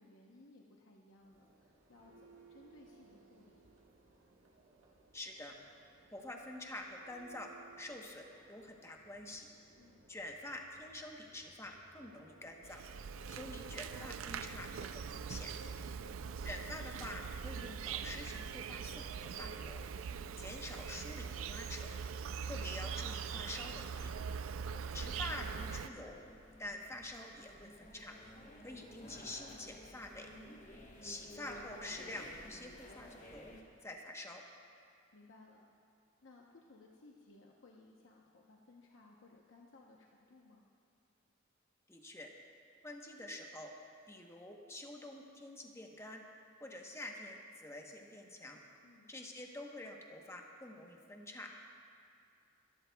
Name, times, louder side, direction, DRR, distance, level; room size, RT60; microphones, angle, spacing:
voice 1, 0.0-3.6 9.8-10.0 16.0-16.2 20.1-20.3 28.9-29.0 35.1-35.7 36.2-40.7 48.8-49.1, left 2 dB, 65° left, -1 dB, 0.9 m, -61 dB
Church bell, 1.1-15.4, right 3 dB, 75° right, 1.5 m, -64 dB
voice 2, 5.1-5.6 6.1-7.5 7.8-9.5 10.1-12.8 13.3-15.5 16.4-19.8 20.4-21.9 22.4-24.1 24.9-26.2 26.6-28.2 28.6-30.3 31.0-33.6 33.8-34.4 41.9-42.3 42.8-43.7 44.1-46.2 46.6-48.6 49.1-51.5, left 1 dB, 15° left, 1 dB, 1.0 m, -47 dB
Insect, 12.6-25.9, right 6 dB, 90° right, 0.4 m, -42 dB
sound 1, 24.6-33.6, left 1 dB, 40° left, 1.3 m, -54 dB
23.5 x 12.5 x 2.3 m, 2.4 s
head